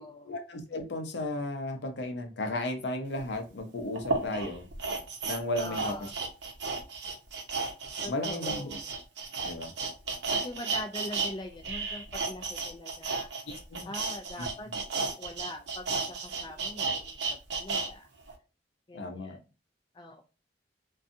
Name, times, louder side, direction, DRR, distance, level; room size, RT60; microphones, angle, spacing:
voice 1, 0.2-4.7 5.2-5.9 8.1-8.8 9.4-9.7 13.5-13.9 14.7-14.8 18.9-19.4, left 1 dB, 80° left, 0.6 m, -34 dB
sound 1, 3.2-3.3 4.0-11.3 11.6-17.9 18.3-18.4, right 4 dB, 75° right, 0.6 m, -33 dB
voice 2, 5.6-6.1 8.0-8.9 10.3-13.3 13.9-14.7 15.0-18.1 18.9-19.4 19.9-20.2, left 1 dB, 25° left, 0.3 m, -43 dB
2.5 x 2.3 x 2.6 m
head